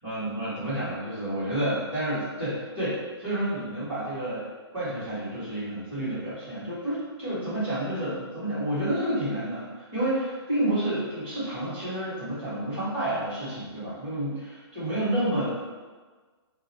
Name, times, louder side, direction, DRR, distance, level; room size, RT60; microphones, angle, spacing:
voice 1, 0.0-4.5 4.7-15.5, right 1 dB, 25° right, -12 dB, 1.3 m, -30 dB
2.4 x 2.4 x 4.0 m, 1.4 s
hypercardioid pair, 170°, 14 cm